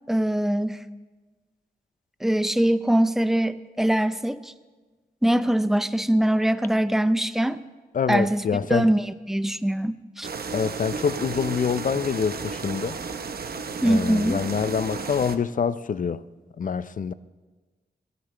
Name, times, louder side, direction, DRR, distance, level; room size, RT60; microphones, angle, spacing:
voice 1, 0.1-0.8 2.2-4.5 5.2-7.6 8.1-8.4 8.7-10.3 13.8-14.4, right 1 dB, ahead, 0.5 m, -22 dB
voice 2, 7.9-8.9 10.5-13.0 13.8-16.2 16.6-17.1, left 6 dB, 55° left, 0.5 m, -26 dB
sound 1, 10.2-15.4, right 5 dB, 70° right, 0.9 m, -33 dB
22.0 x 14.0 x 3.3 m
wide cardioid pair, 110°, 17 cm